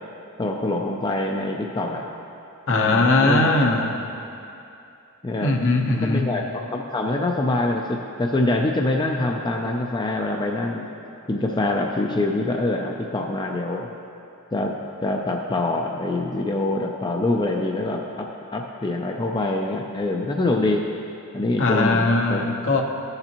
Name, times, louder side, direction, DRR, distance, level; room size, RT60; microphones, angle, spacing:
voice 1, 0.4-2.1 2.7-3.5 5.2-5.6 6.0-6.4 6.7-10.9 11.3-13.9 14.5-14.7 15.0-20.9 21.3-22.5, left 2 dB, 20° left, 1 dB, 0.4 m, -25 dB
voice 2, 2.7-4.0 5.4-6.3 21.6-22.8, left 2 dB, 60° left, 2 dB, 0.8 m, -20 dB
14.0 x 6.7 x 2.9 m, 2.7 s
head